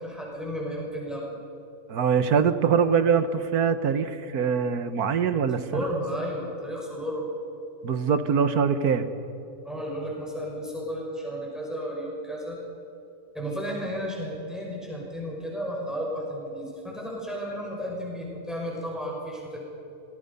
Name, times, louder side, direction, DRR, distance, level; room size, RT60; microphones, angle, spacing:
voice 1, 0.0-1.4 5.6-7.3 9.6-12.6 13.3-19.6, equal, ahead, -3 dB, 5.7 m, -33 dB
voice 2, 1.9-5.9 7.8-9.1, right 6 dB, 85° right, 10 dB, 1.6 m, -23 dB
26.0 x 20.0 x 5.4 m, 3.0 s
omnidirectional pair, 1.6 m